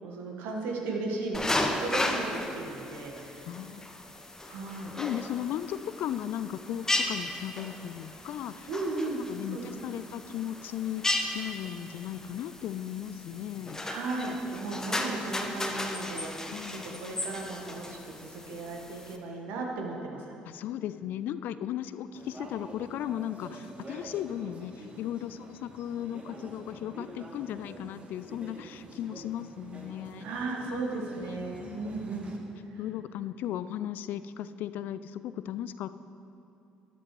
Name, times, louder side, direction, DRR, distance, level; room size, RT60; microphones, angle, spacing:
voice 1, 0.0-3.5 4.5-4.9 8.7-10.1 13.9-20.3 30.2-32.3 32.7-32.8, right 3 dB, 65° right, 0 dB, 1.5 m, -36 dB
sound 1, 1.3-19.2, left 1 dB, 15° left, 1.0 m, -35 dB
voice 2, 3.4-3.9 4.5-4.6 5.0-8.7 9.3-13.8 16.5-17.1 20.4-30.3 30.7-30.8 31.6-31.8 32.8-35.9, left 11 dB, 60° left, 14 dB, 0.3 m, -36 dB
sound 2, 22.1-32.4, right 1 dB, 35° right, 1.4 m, -47 dB
13.0 x 10.5 x 3.2 m, 2.7 s
figure-of-eight pair, 50°, 4 cm